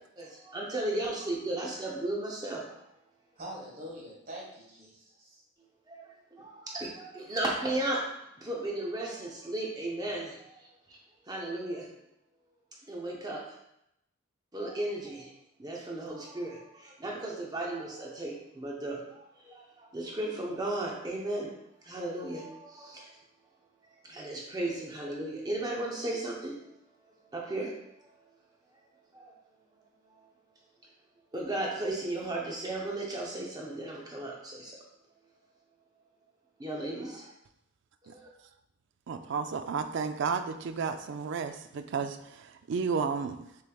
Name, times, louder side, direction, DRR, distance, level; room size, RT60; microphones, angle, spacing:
voice 1, 0.2-2.6 5.9-8.0 8.4-11.0 11.3-11.9 12.9-13.4 14.5-15.3 15.6-21.5 21.8-23.1 24.0-26.6 27.3-27.7 28.0-28.1 29.1-29.3 31.3-34.8 36.6-37.3 38.0-38.3, right 1 dB, 20° right, -2 dB, 0.7 m, -35 dB
voice 2, 3.4-5.4, equal, 45° right, -3 dB, 1.4 m, -44 dB
voice 3, 39.1-43.4, right 5 dB, 60° right, 9 dB, 0.4 m, -32 dB
6.5 x 3.2 x 2.3 m, 0.81 s
head